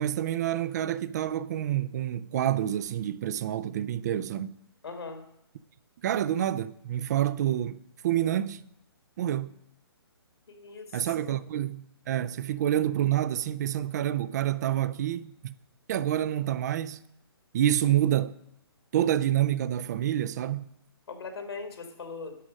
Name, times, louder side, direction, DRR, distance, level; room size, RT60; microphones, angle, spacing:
voice 1, 0.0-4.6 6.0-8.6 9.2-9.5 10.9-15.5 15.9-17.0 17.5-18.4 18.9-20.7, right 11 dB, 40° right, 0.4 m, -28 dB
voice 2, 4.8-5.2 10.5-11.5 21.1-22.4, left 4 dB, 75° left, 2.1 m, -40 dB
11.0 x 6.2 x 5.2 m
hypercardioid pair, 140°, 13 cm